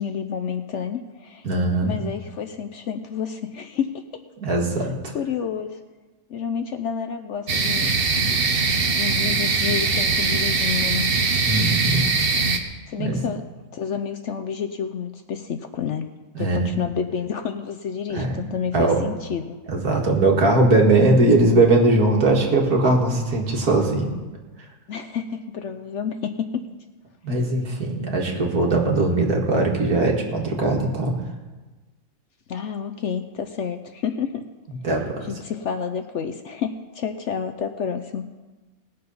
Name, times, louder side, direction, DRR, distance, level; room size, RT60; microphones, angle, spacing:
voice 1, 0.0-1.5 1.8-3.9 5.1-5.8 6.3-7.9 8.8-11.0 12.9-13.4 13.7-16.1 16.4-19.6 24.9-26.5 32.5-34.4 35.2-38.2, left 7 dB, 60° left, 7 dB, 0.8 m, -29 dB
voice 2, 1.4-1.9 4.4-4.9 11.4-12.0 13.0-13.2 16.4-16.6 18.1-18.5 18.7-19.0 19.7-24.1 27.2-31.1 34.8-35.3, right 2 dB, 70° right, 0 dB, 2.3 m, -20 dB
sound 1, 7.5-12.6, right 4 dB, 45° right, 1.0 m, -21 dB
19.5 x 6.7 x 5.5 m, 1.2 s
omnidirectional pair, 1.6 m